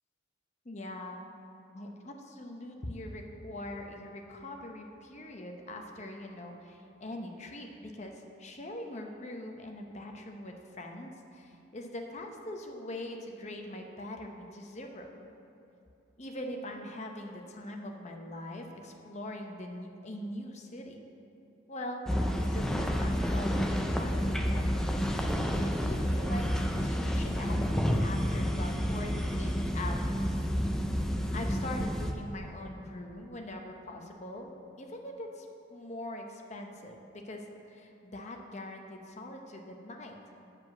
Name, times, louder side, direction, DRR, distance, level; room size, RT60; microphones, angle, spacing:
voice 1, 0.6-1.2 1.7-15.1 16.2-21.0 21.7-30.4 31.3-34.5 34.8-40.2, left 1 dB, 35° left, 2 dB, 0.7 m, -42 dB
sound 1, 22.1-32.1, equal, 5° left, 0.4 m, -30 dB
7.7 x 5.1 x 7.4 m, 2.9 s
head